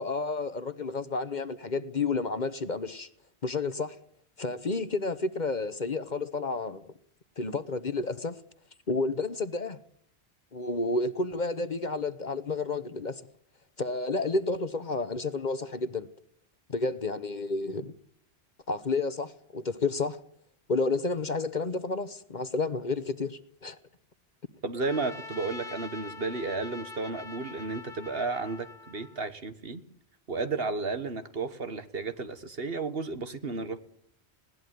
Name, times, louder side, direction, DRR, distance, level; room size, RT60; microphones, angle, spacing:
voice 1, 0.0-3.1 3.4-4.0 4.4-6.9 7.4-8.4 8.9-9.8 10.5-13.2 13.8-16.1 16.7-17.9 18.7-20.2 20.7-23.8, left 3 dB, 45° left, 1.1 m, -31 dB
voice 2, 24.6-29.8 30.3-33.8, right 3 dB, 60° right, 1.7 m, -33 dB
Trumpet, 24.8-29.2, left 3 dB, 5° left, 3.4 m, -44 dB
20.0 x 17.5 x 9.4 m
omnidirectional pair, 1.1 m